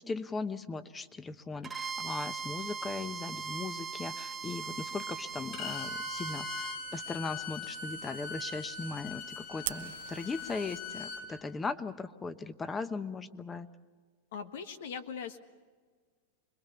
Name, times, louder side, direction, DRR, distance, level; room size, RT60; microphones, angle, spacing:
voice 1, 0.0-13.7, left 4 dB, 15° left, 13 dB, 1.0 m, -38 dB
Bowed string instrument, 1.6-6.8, right 5 dB, 15° right, 0.9 m, -39 dB
Bowed string instrument 2, 5.5-11.2, left 4 dB, 60° left, 7.0 m, -41 dB
Fire, 9.6-10.8, right 14 dB, 75° right, 0.9 m, -40 dB
voice 2, 14.3-15.4, left 6 dB, 80° left, 9 dB, 1.6 m, -40 dB
26.0 x 21.5 x 7.0 m, 1.5 s
supercardioid pair, 135°, 0 cm